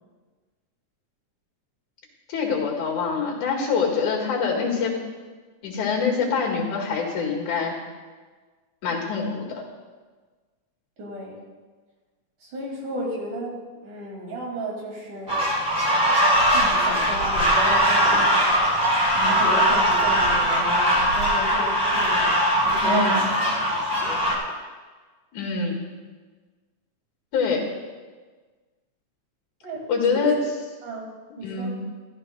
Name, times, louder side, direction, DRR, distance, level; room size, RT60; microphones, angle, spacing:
voice 1, 2.3-5.0 5.6-7.8 8.8-9.6 22.8-23.2 25.3-25.8 27.3-27.6 29.9-30.4 31.4-31.8, left 5 dB, 85° left, 0 dB, 3.4 m, -25 dB
voice 2, 11.0-11.4 12.4-15.5 16.5-18.5 19.1-23.3 29.6-30.3 30.8-31.1 31.4-31.8, right 1 dB, 90° right, -3 dB, 4.1 m, -33 dB
sound 1, 15.3-24.4, equal, 10° right, 1.3 m, -20 dB
14.0 x 12.5 x 2.4 m, 1.4 s
omnidirectional pair, 3.3 m